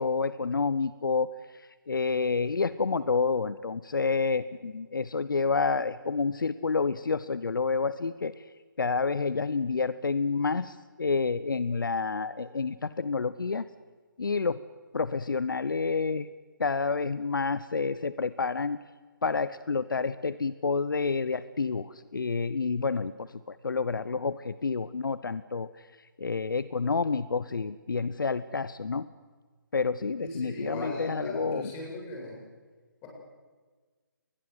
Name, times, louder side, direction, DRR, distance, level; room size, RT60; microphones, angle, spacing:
voice 1, 0.0-8.3 8.8-13.7 14.2-14.6 14.9-16.3 16.6-18.8 19.2-25.7 26.2-29.1 29.7-31.7, left 4 dB, 75° left, 15 dB, 0.8 m, -29 dB
voice 2, 30.2-32.4 33.0-33.1, left 2 dB, 20° left, -1 dB, 7.4 m, -38 dB
24.0 x 20.5 x 8.0 m, 1.4 s
figure-of-eight pair, 150°, 11 cm